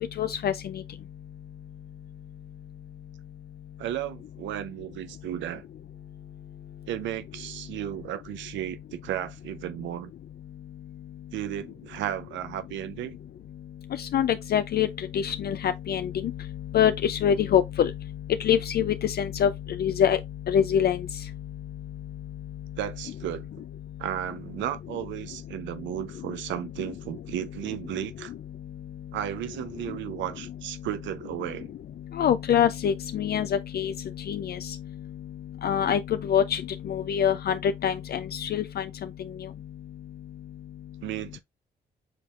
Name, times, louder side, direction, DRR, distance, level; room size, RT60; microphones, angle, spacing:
voice 1, 0.2-0.5 14.0-14.9 15.1-16.3 16.7-17.9 18.4-19.5 19.8-20.2 20.5-21.0 32.1-33.9 34.3-34.8 35.6-36.6 36.9-38.9, left 9 dB, 60° left, 0.4 m, -24 dB
voice 2, 3.8-5.6 6.9-10.1 11.3-13.2 22.8-23.5 24.0-28.3 29.1-31.7 41.0-41.4, right 12 dB, 85° right, 0.6 m, -34 dB
6.6 x 3.4 x 2.4 m
supercardioid pair, 50°, 19 cm